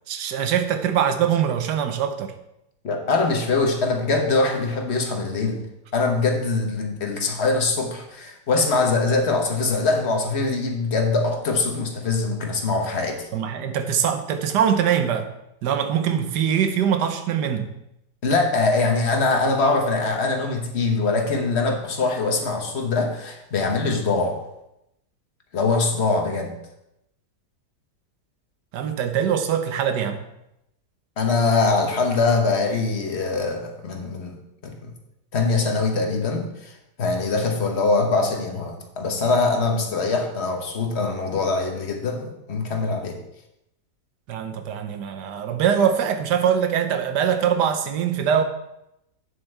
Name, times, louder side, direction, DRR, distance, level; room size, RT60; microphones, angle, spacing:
voice 1, 0.1-2.3 13.3-15.3 15.6-17.7 28.7-30.2 44.3-48.4, right 8 dB, 75° right, 8 dB, 1.4 m, -23 dB
voice 2, 2.8-5.6 5.9-13.3 18.2-24.4 25.5-26.5 31.2-34.3 34.6-34.9 35.3-36.7 37.0-43.2, left 3 dB, 40° left, 3 dB, 1.2 m, -23 dB
8.9 x 7.3 x 3.3 m, 0.84 s
omnidirectional pair, 1.9 m